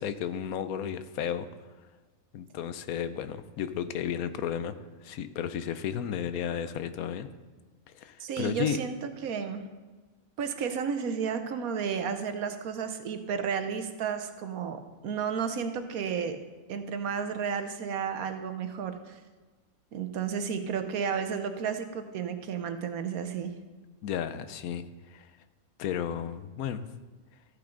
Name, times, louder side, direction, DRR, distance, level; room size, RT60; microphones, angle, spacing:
voice 1, 0.0-1.5 2.3-4.7 5.0-7.3 7.9-8.8 24.0-25.3 25.8-26.9, left 9 dB, 90° left, 11 dB, 1.1 m, -33 dB
voice 2, 8.2-8.9 9.2-9.6 10.4-16.4 16.7-19.2 19.9-23.5, right 6 dB, 85° right, 8 dB, 1.3 m, -32 dB
14.0 x 8.7 x 3.8 m, 1.3 s
omnidirectional pair, 1.5 m